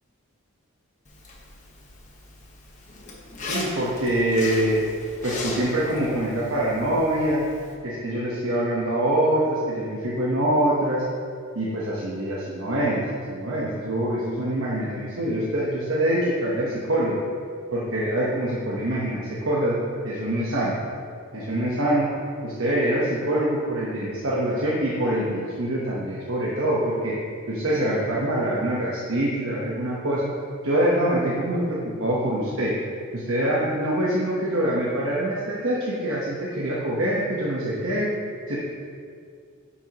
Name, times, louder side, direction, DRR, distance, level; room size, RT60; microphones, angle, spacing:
Zipper (clothing), 1.0-7.7, left 2 dB, 35° left, 1.2 m, -37 dB
voice 1, 3.4-4.8 5.2-7.5 7.8-11.0 11.5-13.0 13.3-17.2 17.7-19.8 20.0-20.8 21.3-22.1 22.4-27.1 27.5-30.3 30.6-32.7 33.1-38.1 38.5-38.6, right 1 dB, 70° right, -6 dB, 1.1 m, -24 dB
9.9 x 7.1 x 3.0 m, 2.2 s
head